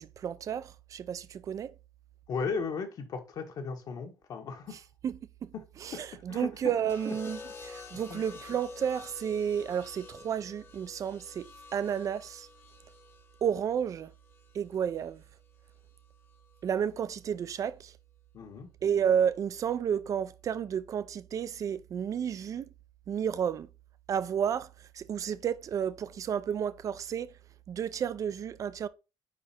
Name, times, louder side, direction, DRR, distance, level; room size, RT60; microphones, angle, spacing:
voice 1, 0.0-1.7 5.0-5.5 5.8-12.5 13.4-14.1 14.5-15.2 16.6-17.9 18.8-22.7 23.1-23.7 24.1-24.7 24.9-27.3 27.7-28.9, right 8 dB, 45° right, 0.5 m, -31 dB
voice 2, 2.3-4.8 5.5-5.6 5.9-6.7 7.0-7.1 8.1-8.2 18.3-18.7, left 5 dB, 55° left, 1.4 m, -36 dB
sound 1, 6.9-15.0 16.3-16.7, left 4 dB, 30° left, 0.9 m, -49 dB
4.9 x 4.8 x 4.3 m
cardioid pair, 125°, 8 cm